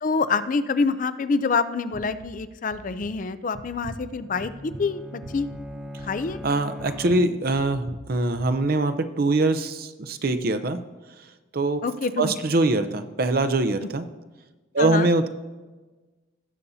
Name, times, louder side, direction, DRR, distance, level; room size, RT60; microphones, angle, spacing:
voice 1, 0.0-5.5 6.0-6.4 11.8-12.3 14.8-15.1, left 4 dB, 45° left, 12 dB, 0.4 m, -26 dB
sound 1, 1.9-2.4 2.7-3.1 3.5-4.0 4.4-4.8 5.2-5.6 6.0-6.4 6.8-7.2 7.5-8.0 8.3-8.5, right 1 dB, 80° right, 0.8 m, -42 dB
Bowed string instrument, 4.2-7.8, left 1 dB, ahead, 0.7 m, -40 dB
voice 2, 6.4-10.8 11.5-11.8 12.2-14.1 14.7-15.3, right 2 dB, 50° right, 9 dB, 0.6 m, -23 dB
18.0 x 7.0 x 2.7 m, 1.2 s
head